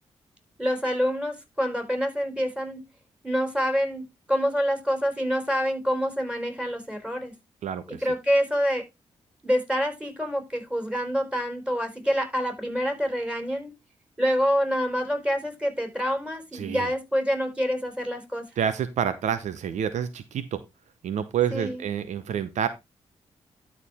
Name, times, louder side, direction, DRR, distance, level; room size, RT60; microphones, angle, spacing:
voice 1, 0.6-2.8 3.2-7.3 8.0-8.8 9.4-13.7 14.2-18.5 21.5-21.8, equal, 10° right, 6 dB, 4.4 m, -26 dB
voice 2, 7.6-8.1 16.5-16.9 18.6-20.6 21.0-22.7, right 8 dB, 80° right, 13 dB, 0.8 m, -28 dB
12.5 x 4.9 x 3.5 m, 0.22 s
supercardioid pair, 55°, 12 cm